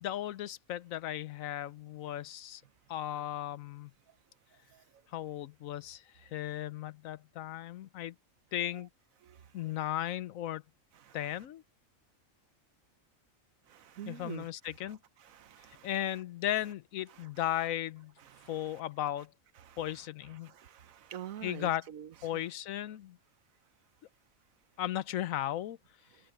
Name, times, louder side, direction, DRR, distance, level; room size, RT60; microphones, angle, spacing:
voice 1, 0.0-2.6 2.9-3.9 5.1-8.1 8.5-8.9 9.5-10.6 11.1-11.6 14.1-15.0 15.8-18.1 18.5-19.3 19.8-20.5 21.4-21.9 22.2-23.2 24.8-25.8, left 12 dB, 85° left, 1.1 m, -36 dB
voice 2, 13.7-14.5 15.2-15.9 18.3-18.8 19.6-19.8 20.4-22.4, right 10 dB, 85° right, 1.3 m, -47 dB
omnidirectional pair, 1.4 m